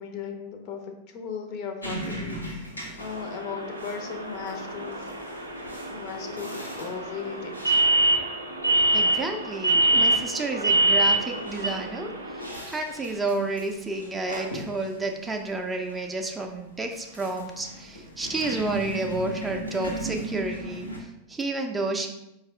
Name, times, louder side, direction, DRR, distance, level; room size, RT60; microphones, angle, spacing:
voice 1, 0.0-2.7 3.0-5.1 5.9-7.8, left 6 dB, 45° left, 5 dB, 0.5 m, -37 dB
sound 1, 1.8-21.0, right 1 dB, 85° left, 0.8 m, -40 dB
sound 2, 3.0-12.5, right 2 dB, 85° right, 0.4 m, -25 dB
voice 2, 8.9-22.1, right 2 dB, 10° right, 3 dB, 0.4 m, -31 dB
4.6 x 2.3 x 3.3 m, 0.88 s
figure-of-eight pair, 90°, 0 cm